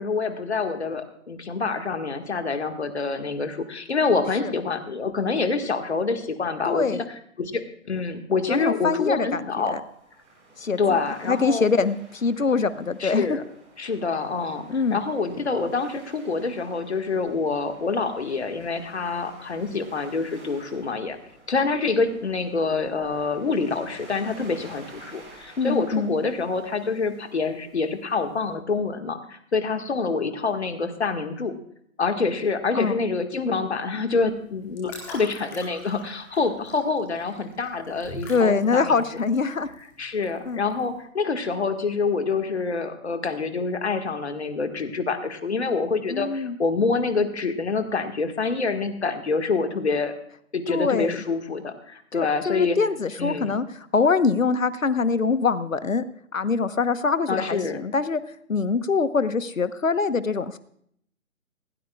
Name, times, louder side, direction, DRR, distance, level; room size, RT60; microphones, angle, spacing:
voice 1, 0.0-7.0 7.4-9.8 10.8-11.6 13.0-13.4 13.8-21.2 21.5-31.6 32.0-39.0 40.0-50.1 50.5-52.8 53.2-53.6 57.3-57.8, left 4 dB, 50° left, 7 dB, 1.8 m, -26 dB
voice 2, 6.7-7.0 8.5-9.8 10.6-11.0 11.2-13.4 14.7-15.0 25.6-26.1 32.7-33.0 38.3-39.7 40.4-40.6 46.1-46.5 50.7-51.2 52.1-53.6 53.9-56.0 56.3-58.2 58.5-60.6, left 4 dB, 65° left, 14 dB, 1.1 m, -24 dB
Waves surf, 9.7-28.5, right 2 dB, 15° right, 4.3 m, -51 dB
sound 1, 34.2-41.0, equal, 5° left, 1.2 m, -44 dB
19.5 x 17.0 x 2.4 m, 0.69 s
figure-of-eight pair, 150°, 42 cm